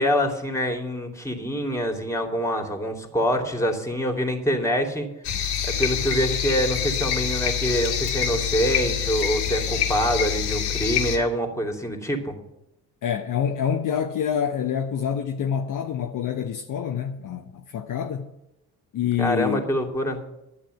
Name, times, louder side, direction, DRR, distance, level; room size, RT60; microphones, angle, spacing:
voice 1, 0.0-5.1 5.6-12.3 19.2-20.2, equal, 5° left, 2.7 m, -25 dB
sound 1, 5.2-11.2, left 9 dB, 60° left, 2.0 m, -26 dB
voice 2, 13.0-18.3 18.9-19.7, left 8 dB, 45° left, 1.0 m, -27 dB
11.5 x 7.0 x 9.3 m
figure-of-eight pair, 50°, 46 cm